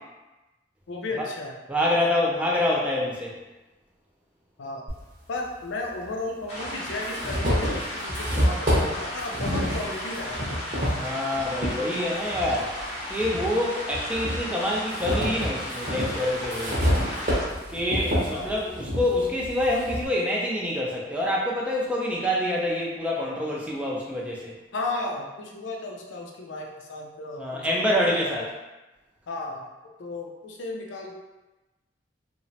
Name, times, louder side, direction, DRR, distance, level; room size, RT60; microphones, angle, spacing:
voice 1, 0.9-1.5 4.6-4.9 5.3-10.5 18.3-18.5 24.7-28.5 29.3-29.7 30.0-31.1, left 2 dB, 85° left, 0 dB, 0.4 m, -34 dB
voice 2, 1.7-3.3 11.0-12.7 13.1-16.9 17.7-24.5 27.4-28.5, left 1 dB, 5° right, -4 dB, 0.4 m, -26 dB
sound 1, 4.9-5.0 6.0-6.1 6.6-11.8 12.3-13.5 13.9-20.1, equal, 45° right, 0.7 m, -28 dB
sound 2, 6.5-17.4, left 1 dB, 35° left, 0.6 m, -35 dB
2.9 x 2.1 x 2.7 m, 1.1 s
head